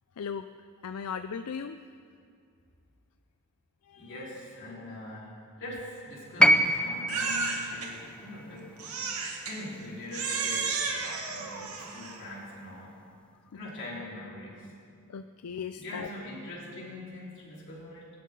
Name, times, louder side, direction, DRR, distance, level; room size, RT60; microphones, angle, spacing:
voice 1, 0.2-0.5 0.8-1.8 3.8-4.3 4.7-4.8 15.1-16.1, left 6 dB, 80° left, 9 dB, 0.4 m, -37 dB
voice 2, 4.0-8.7 9.4-12.9 13.5-14.7 15.8-18.1, left 1 dB, 55° left, -6 dB, 4.3 m, -43 dB
sound 1, 6.4-10.6 11.8-11.9, equal, 5° left, 0.4 m, -27 dB
Crying sobbing, 7.1-7.9 8.8-9.6 10.1-12.2, right 4 dB, 80° right, 1.9 m, -32 dB
21.5 x 11.5 x 3.8 m, 2.3 s
head